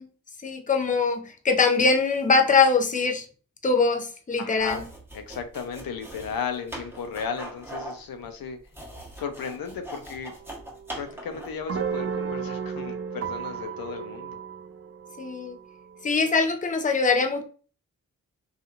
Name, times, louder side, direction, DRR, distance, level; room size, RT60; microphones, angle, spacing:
voice 1, 0.4-3.2 3.6-4.8 15.2-15.6 16.0-17.4, left 4 dB, 20° left, 5 dB, 0.6 m, -22 dB
voice 2, 4.4-4.8 5.1-8.6 9.2-10.3 11.0-14.4, left 6 dB, 75° left, 7 dB, 0.6 m, -35 dB
sound 1, 4.6-11.7, right 1 dB, 5° right, 1.2 m, -41 dB
sound 2, 10.3-16.4, right 6 dB, 45° right, 0.4 m, -35 dB
2.7 x 2.4 x 2.4 m, 0.38 s
cardioid pair, 45°, 36 cm